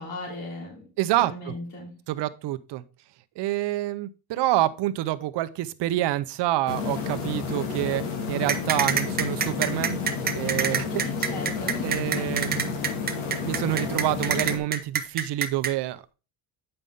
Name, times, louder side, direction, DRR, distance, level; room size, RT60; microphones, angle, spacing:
voice 1, 0.0-0.9 1.2-2.0 10.9-11.9 12.1-12.4, left 2 dB, 70° left, 3.1 m, -36 dB
voice 2, 1.0-1.5 2.1-2.8 3.4-10.0 10.3-11.1 11.8-12.8 13.4-16.0, right 15 dB, 60° right, 0.7 m, -27 dB
sound 1, 6.7-14.6, left 5 dB, 85° left, 2.1 m, -31 dB
sound 2, 8.5-15.7, right 7 dB, 20° right, 0.5 m, -26 dB
8.9 x 5.5 x 3.4 m
cardioid pair, 170°, 47 cm